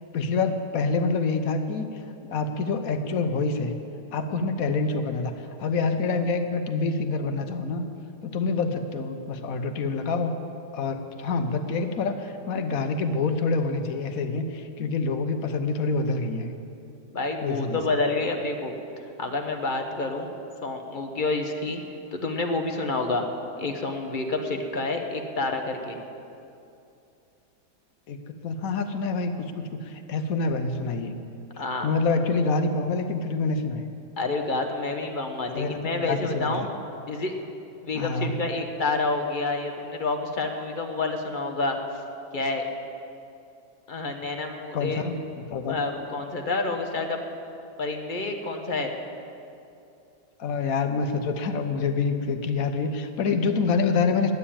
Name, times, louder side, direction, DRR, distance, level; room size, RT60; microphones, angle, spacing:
voice 1, 0.1-2.0 2.3-3.7 4.1-7.8 8.2-10.3 10.7-16.5 17.4-17.8 28.1-31.2 31.8-33.8 35.5-36.7 37.9-38.3 44.7-45.8 50.4-54.3, left 4 dB, 65° left, 7 dB, 1.2 m, -27 dB
voice 2, 17.1-18.7 19.2-20.3 20.6-21.8 22.1-23.2 23.6-26.0 31.6-31.9 34.2-36.7 37.0-37.3 37.8-41.8 42.3-42.7 43.9-45.0 45.5-47.2 47.8-48.9, left 3 dB, 35° left, 4 dB, 0.9 m, -28 dB
11.0 x 9.5 x 8.6 m, 2.7 s
omnidirectional pair, 1.8 m